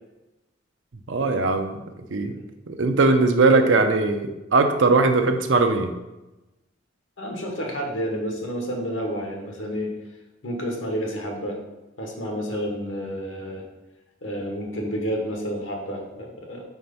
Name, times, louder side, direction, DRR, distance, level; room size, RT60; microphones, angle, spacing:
voice 1, 1.1-1.8 2.1-2.3 2.7-5.9, right 3 dB, 75° right, 7 dB, 0.6 m, -20 dB
voice 2, 7.2-9.9 10.4-11.6 12.0-13.6 14.2-16.6, equal, 85° left, 0 dB, 1.4 m, -30 dB
4.6 x 4.3 x 5.4 m, 1.0 s
head